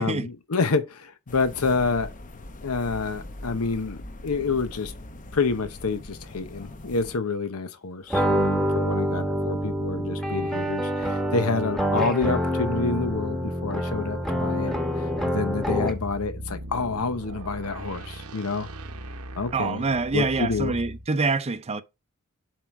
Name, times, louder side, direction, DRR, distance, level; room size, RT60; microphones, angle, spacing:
voice 1, 0.0-2.1 2.6-4.0 4.2-4.9 5.3-14.7 15.3-18.7 19.4-19.8 20.1-20.7, left 4 dB, 90° left, 0.9 m, -28 dB
sound 1, 1.3-7.2, left 1 dB, 40° left, 0.8 m, -41 dB
sound 2, 8.1-16.1, equal, ahead, 1.2 m, -26 dB
sound 3, 15.8-21.1, right 1 dB, 90° right, 1.0 m, -39 dB
voice 2, 19.5-21.8, right 4 dB, 30° right, 0.5 m, -26 dB
7.5 x 4.9 x 4.7 m
head